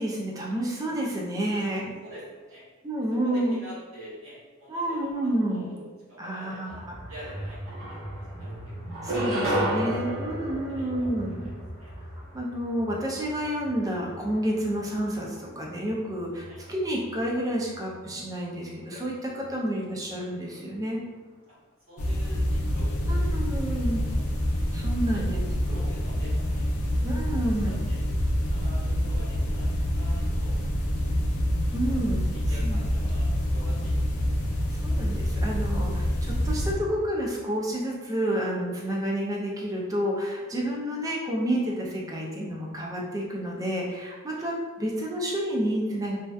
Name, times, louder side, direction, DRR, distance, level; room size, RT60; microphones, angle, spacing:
voice 1, 0.0-1.9 2.8-3.6 4.7-5.7 6.2-6.8 9.0-11.5 12.3-21.0 23.1-24.0 24.7-25.4 27.0-27.8 31.7-32.2 32.6-32.8 34.8-46.2, right 1 dB, 15° right, -2 dB, 0.4 m, -29 dB
voice 2, 1.5-2.6 3.2-5.8 6.1-6.8 7.1-9.2 10.7-11.5 11.8-11.9 16.5-16.6 19.5-19.6 21.9-24.2 24.6-24.7 25.1-25.4 25.7-26.6 26.9-28.0 28.4-29.7 29.9-30.6 31.8-32.0 32.3-34.6 35.7-36.1 38.8-38.9 44.3-44.5, equal, 70° right, -9 dB, 1.3 m, -47 dB
sound 1, 6.7-20.6, equal, 30° left, 0.9 m, -41 dB
sound 2, 7.2-7.3 7.7-8.4 8.9-11.5, right 1 dB, 45° right, 0.9 m, -30 dB
sound 3, 22.0-36.7, equal, 90° left, 0.4 m, -26 dB
2.6 x 2.2 x 2.3 m, 1.3 s
head